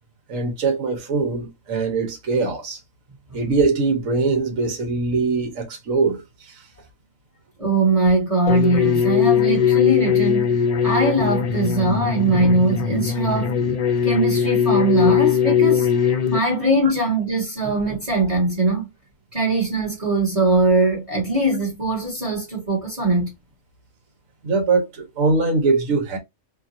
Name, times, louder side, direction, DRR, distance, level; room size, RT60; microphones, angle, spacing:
voice 1, 0.3-2.8 3.3-6.6 24.4-26.2, right 4 dB, 80° right, 1.4 m, -22 dB
voice 2, 7.6-13.5 14.0-18.9 19.3-23.3, right 2 dB, 25° right, 1.3 m, -21 dB
sound 1, 8.5-16.4, left 8 dB, 75° left, 0.3 m, -20 dB
2.9 x 2.5 x 2.6 m
omnidirectional pair, 1.4 m